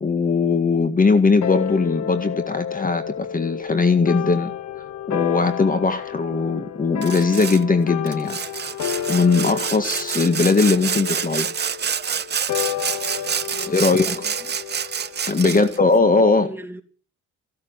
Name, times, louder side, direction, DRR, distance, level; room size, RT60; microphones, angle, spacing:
voice 1, 0.0-4.5 5.1-8.4 9.1-11.5 13.6-14.1 15.3-16.5, left 4 dB, 30° left, 1.8 m, -19 dB
sound 1, 1.4-16.1, left 10 dB, 65° left, 1.0 m, -31 dB
Sawing, 7.0-7.6 8.1-15.8, right 7 dB, 35° right, 0.7 m, -27 dB
voice 2, 13.5-14.6 15.4-15.8 16.2-16.8, right 1 dB, 5° right, 2.6 m, -39 dB
16.0 x 12.5 x 7.3 m
cardioid pair, 90°, 30 cm